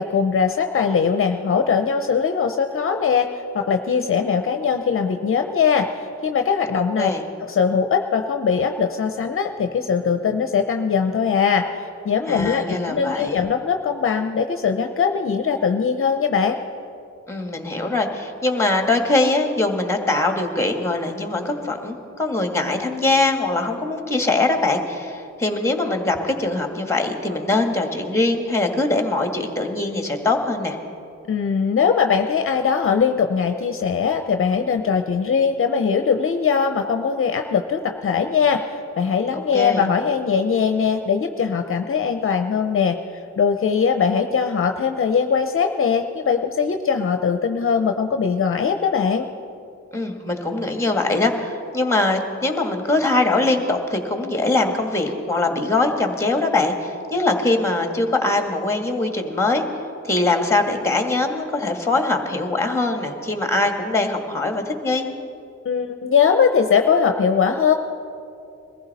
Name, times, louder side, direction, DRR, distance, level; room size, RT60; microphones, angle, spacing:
voice 1, 0.0-3.3 3.5-7.1 7.5-16.6 31.3-43.0 43.4-49.3 65.6-67.7, left 6 dB, 45° left, 6 dB, 0.7 m, -21 dB
voice 2, 6.7-7.2 12.3-13.4 17.3-30.8 39.3-39.9 49.9-59.6 60.0-65.1, left 2 dB, 10° left, 4 dB, 1.7 m, -22 dB
22.0 x 15.0 x 4.2 m, 2.6 s
cardioid pair, 100°, 29 cm